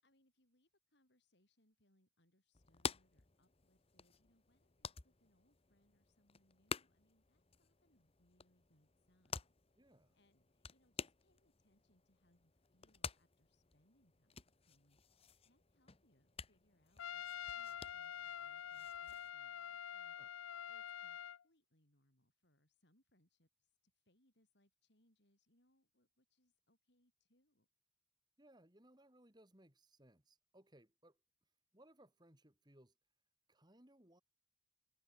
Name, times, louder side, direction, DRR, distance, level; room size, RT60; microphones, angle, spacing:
voice 1, 0.0-9.4 10.1-20.2 20.7-21.2 21.4-27.7, left 1 dB, 55° left, 6.1 m, -78 dB
sound 1, 2.5-19.3, left 6 dB, 30° left, 1.0 m, -51 dB
voice 2, 9.8-10.2 20.2-20.3 28.4-33.0 33.5-34.2, right 1 dB, 20° right, 2.6 m, -66 dB
Trumpet, 17.0-21.4, left 9 dB, 85° left, 0.5 m, -46 dB
head